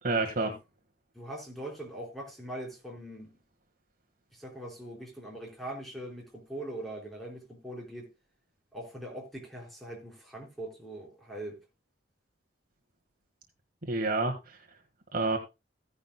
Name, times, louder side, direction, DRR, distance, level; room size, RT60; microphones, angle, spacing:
voice 1, 0.0-0.5 13.8-14.6 15.1-15.4, right 3 dB, 45° right, 1.6 m, -28 dB
voice 2, 1.1-3.3 4.3-8.1 8.7-11.6, right 1 dB, ahead, 4.3 m, -41 dB
15.5 x 10.5 x 2.2 m
head